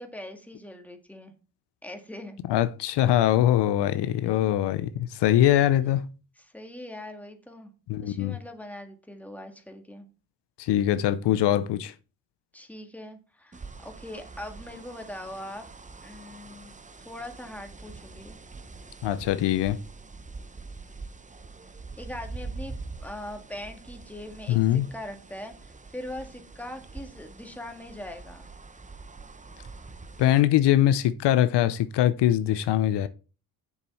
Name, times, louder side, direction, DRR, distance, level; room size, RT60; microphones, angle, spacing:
voice 1, 0.0-1.3 1.8-2.4 4.1-4.3 5.8-5.9 6.3-7.7 8.0-10.1 12.5-15.6 16.0-16.8 17.0-18.4 22.0-22.7 23.0-28.5, left 1 dB, 5° left, 1.7 m, -41 dB
voice 2, 2.5-6.0 7.9-8.4 10.6-11.9 19.0-19.8 24.5-24.9 30.2-33.1, left 12 dB, 75° left, 0.7 m, -22 dB
sound 1, 13.5-30.4, right 3 dB, 20° right, 0.7 m, -44 dB
7.3 x 6.8 x 4.2 m
cardioid pair, 75°, 41 cm